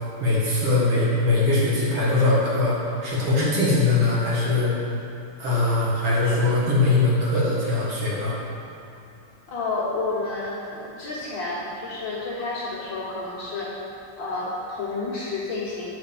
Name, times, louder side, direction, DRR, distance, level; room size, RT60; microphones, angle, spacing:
voice 1, 0.2-4.7 5.4-8.4, left 2 dB, 85° right, -7 dB, 2.7 m, -21 dB
voice 2, 9.5-13.7 14.2-15.9, left 3 dB, 60° left, -7 dB, 1.8 m, -30 dB
8.6 x 4.0 x 6.9 m, 2.7 s
omnidirectional pair, 2.4 m